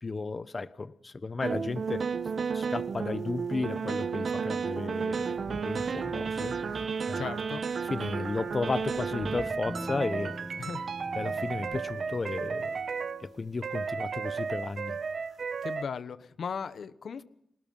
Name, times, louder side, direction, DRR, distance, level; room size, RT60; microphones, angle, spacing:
voice 1, 0.0-2.1 2.5-6.5 7.1-7.3 7.8-10.4 11.1-12.8 13.2-15.0, left 3 dB, 40° left, 13 dB, 1.1 m, -34 dB
sound 1, 1.4-13.3 13.6-15.8, right 5 dB, 65° right, 1.1 m, -33 dB
sound 2, 5.1-11.8, left 1 dB, 15° left, 0.9 m, -46 dB
voice 2, 7.1-7.6 10.6-10.9 15.6-17.3, left 6 dB, 75° left, 12 dB, 1.1 m, -37 dB
Electric guitar / Strum, 9.7-14.8, right 1 dB, 25° right, 1.5 m, -45 dB
28.0 x 19.0 x 5.6 m, 0.75 s
cardioid pair, 70°, 0 cm